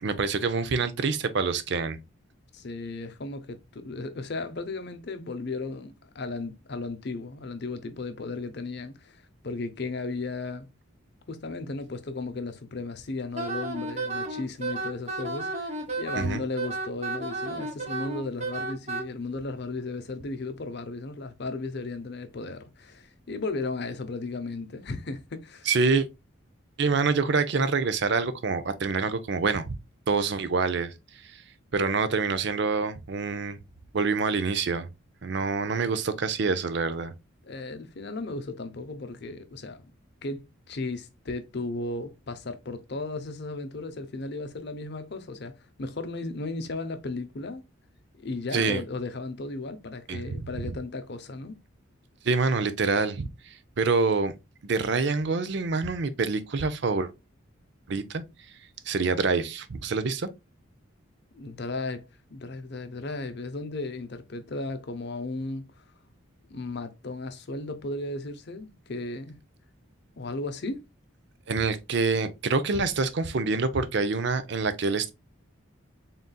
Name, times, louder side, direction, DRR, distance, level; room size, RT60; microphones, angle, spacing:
voice 1, 0.0-2.0 16.1-16.4 25.7-26.1 26.8-29.8 30.1-30.9 31.2-31.4 31.7-33.6 33.9-34.9 35.2-37.1 48.5-48.8 50.1-50.5 52.2-54.3 54.6-57.1 57.9-58.2 58.9-60.3 71.5-75.1, right 4 dB, 55° right, 0.5 m, -26 dB
voice 2, 2.5-10.7 11.3-25.7 37.4-39.8 40.2-45.5 45.8-47.6 48.2-51.5 61.3-65.7 66.5-69.4 70.2-70.8, left 3 dB, 55° left, 0.6 m, -35 dB
Wind instrument woodwind instrument, 13.3-19.0, right 2 dB, 35° right, 1.0 m, -32 dB
4.0 x 3.7 x 2.2 m
head